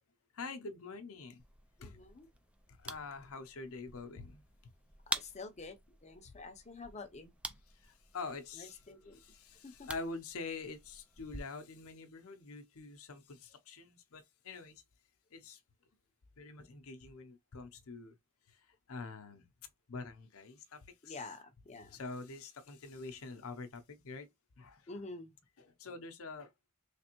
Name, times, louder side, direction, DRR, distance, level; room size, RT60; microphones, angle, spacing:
voice 1, 0.3-1.4 1.8-2.0 2.8-4.4 7.7-8.8 9.1-14.8 15.3-15.6 16.4-18.1 18.5-19.5 19.9-21.2 21.9-24.3 24.6-25.0 25.6-26.5, left 3 dB, 65° left, 0.7 m, -46 dB
sound 1, 1.4-11.4, right 1 dB, 5° right, 0.3 m, -47 dB
voice 2, 1.8-2.3 5.1-7.3 8.5-9.2 9.6-9.9 21.0-22.0 24.9-25.3, left 3 dB, 30° left, 0.7 m, -48 dB
3.3 x 3.3 x 3.0 m
head